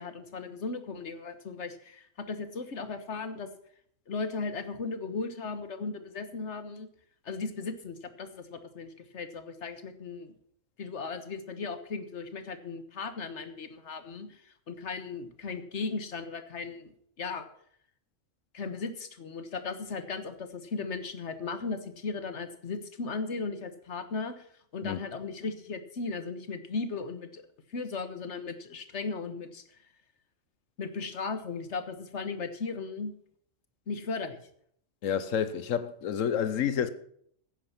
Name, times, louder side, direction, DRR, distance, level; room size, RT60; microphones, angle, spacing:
voice 1, 0.0-3.5 4.1-6.9 7.3-10.3 10.8-17.5 18.5-24.4 24.7-27.4 27.7-29.6 30.8-33.1 33.9-34.4, left 4 dB, 65° left, 1.6 m, -36 dB
voice 2, 35.0-36.9, left 8 dB, 85° left, 1.2 m, -29 dB
16.0 x 9.3 x 5.9 m
omnidirectional pair, 1.3 m